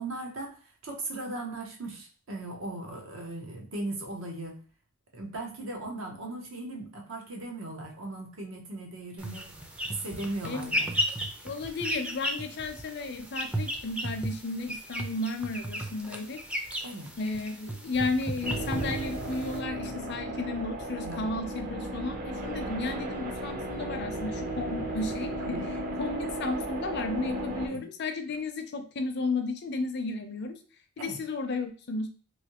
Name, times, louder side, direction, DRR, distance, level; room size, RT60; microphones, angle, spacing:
voice 1, 0.0-4.6 5.1-9.5 9.9-10.9 16.8-17.1 21.0-21.2 25.4-25.7 27.6-27.8 31.0-31.2, right 2 dB, 75° right, 1 dB, 0.9 m, -38 dB
sound 1, 9.2-19.6, equal, 5° right, 0.4 m, -35 dB
voice 2, 11.4-16.4 17.2-25.6 26.0-30.6 31.0-32.1, left 3 dB, 55° left, 7 dB, 0.5 m, -33 dB
sound 2, 18.4-27.7, right 1 dB, 45° right, 0.6 m, -35 dB
3.2 x 2.6 x 2.9 m, 0.40 s
head